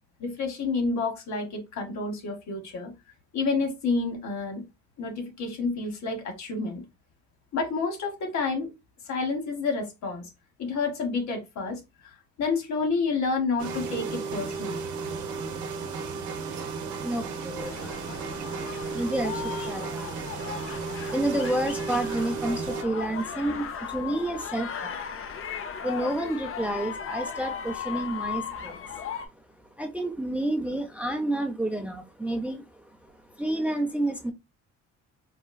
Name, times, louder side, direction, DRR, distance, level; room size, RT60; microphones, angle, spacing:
voice 1, 0.2-2.9 3.3-4.6 5.0-6.8 7.5-8.7 9.0-10.3 10.6-12.1 12.4-14.9, left 4 dB, 65° left, 1.2 m, -29 dB
sound 1, 13.6-22.8, right 5 dB, 75° right, 0.7 m, -34 dB
voice 2, 17.0-25.3 25.5-29.1 29.6-34.3, right 1 dB, 5° right, 0.5 m, -31 dB
sound 2, 17.6-29.3, left 7 dB, 45° left, 0.5 m, -37 dB
4.0 x 2.3 x 2.2 m
cardioid pair, 90°, 30 cm